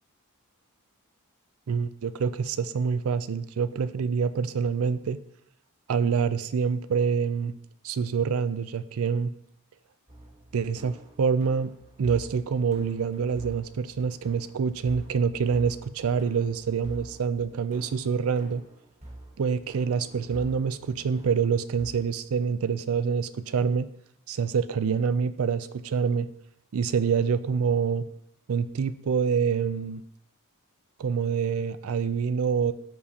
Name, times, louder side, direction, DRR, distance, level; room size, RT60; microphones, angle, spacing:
voice 1, 1.7-5.2 5.9-7.5 7.8-9.3 10.5-11.7 12.0-18.6 19.4-23.9 24.3-26.3 26.7-28.0 28.5-30.0 31.0-32.7, right 6 dB, 70° right, 14 dB, 0.4 m, -26 dB
sound 1, 10.1-21.9, right 1 dB, 30° right, 1.4 m, -47 dB
13.5 x 4.5 x 2.8 m, 0.77 s
head